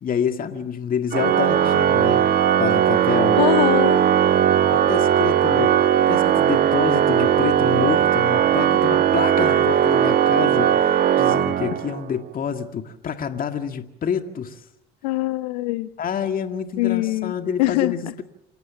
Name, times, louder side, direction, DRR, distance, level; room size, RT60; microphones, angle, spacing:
voice 1, 0.0-3.4 4.7-14.6 16.0-18.2, left 7 dB, 45° left, 6 dB, 2.0 m, -28 dB
Organ, 1.1-12.1, right 9 dB, 50° right, 1.2 m, -18 dB
voice 2, 3.4-4.0 9.4-9.6 15.0-15.9 16.8-17.3 17.6-18.0, left 17 dB, 85° left, 13 dB, 1.1 m, -22 dB
27.5 x 18.0 x 7.3 m, 0.86 s
hypercardioid pair, 65°, 20 cm